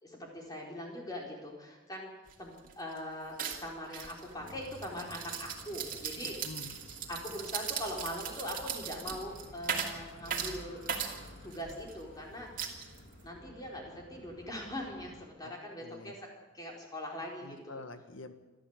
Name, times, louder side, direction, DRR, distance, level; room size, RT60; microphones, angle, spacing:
voice 1, 0.0-2.1 2.4-6.4 7.1-10.8 11.4-12.8 13.2-16.3 16.5-17.8, left 1 dB, 20° left, -1 dB, 4.6 m, -42 dB
sound 1, 2.3-2.4 2.6-3.0 3.4-11.9 12.6-13.3, right 7 dB, 40° right, 2.6 m, -38 dB
sound 2, 4.3-15.2, left 1 dB, 50° left, 3.1 m, -53 dB
voice 2, 6.2-6.7 15.4-15.5 15.8-16.1 17.4-18.3, left 2 dB, 70° left, 8 dB, 1.8 m, -47 dB
27.0 x 12.5 x 8.3 m, 1.2 s
head